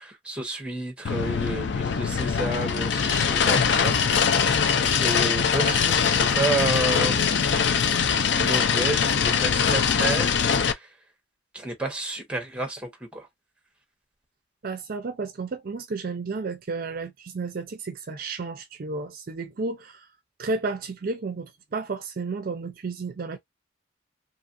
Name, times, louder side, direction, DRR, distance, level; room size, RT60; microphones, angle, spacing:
voice 1, 0.0-3.9 4.7-7.3 8.4-10.9 11.5-13.3, right 2 dB, 5° right, 0.8 m, -30 dB
sound 1, 1.0-10.7, left 6 dB, 65° left, 0.4 m, -22 dB
voice 2, 14.6-20.1 20.4-23.4, right 3 dB, 50° right, 0.4 m, -32 dB
2.9 x 2.4 x 2.5 m
head